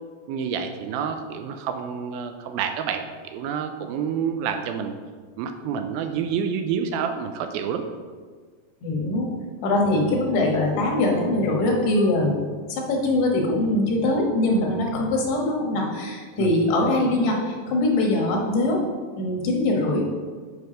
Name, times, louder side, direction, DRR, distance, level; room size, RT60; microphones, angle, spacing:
voice 1, 0.3-4.9 5.4-7.8 16.4-16.5, right 7 dB, 80° right, 6 dB, 2.2 m, -28 dB
voice 2, 8.8-9.3 9.6-12.4 12.7-18.8 19.2-20.1, left 2 dB, 90° left, -1 dB, 3.5 m, -22 dB
9.6 x 4.7 x 5.1 m, 1.6 s
omnidirectional pair, 4.6 m